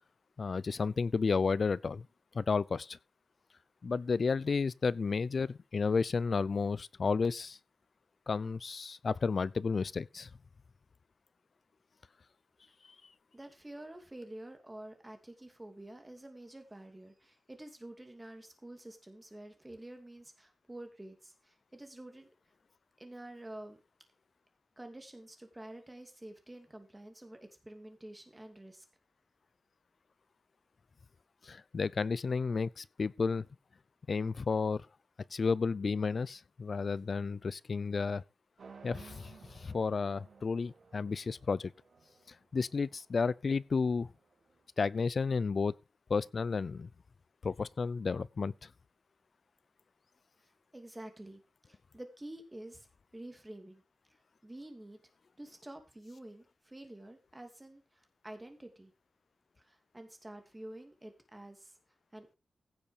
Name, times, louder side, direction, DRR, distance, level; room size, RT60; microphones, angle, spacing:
voice 1, 0.4-2.1 2.3-3.0 3.8-7.6 8.3-10.3 31.4-33.5 34.1-34.9 35.3-38.2 38.8-41.7 42.5-44.1 44.8-45.7 46.1-46.9 47.4-48.5, left 4 dB, 50° left, 0.5 m, -32 dB
voice 2, 13.3-22.3 23.0-23.8 24.8-28.8 50.7-51.4 51.7-52.9 53.1-53.8 54.4-55.0 55.4-58.9 59.6-61.7 62.1-62.4, right 1 dB, 15° right, 2.7 m, -49 dB
sound 1, 38.6-44.7, right 5 dB, 80° right, 5.0 m, -57 dB
16.0 x 7.0 x 4.9 m
wide cardioid pair, 140°, 0 cm